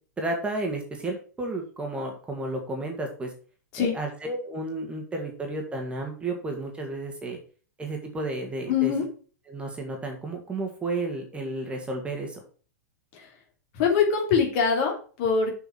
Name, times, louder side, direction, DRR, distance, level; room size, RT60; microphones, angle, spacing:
voice 1, 0.2-3.3 3.8-7.4 7.8-8.9 9.5-12.4, right 2 dB, 10° right, 2 dB, 2.0 m, -32 dB
voice 2, 8.7-9.1 13.8-15.6, left 6 dB, 45° left, 2 dB, 2.8 m, -23 dB
7.0 x 5.9 x 5.9 m, 0.39 s
figure-of-eight pair, 100°, 9 cm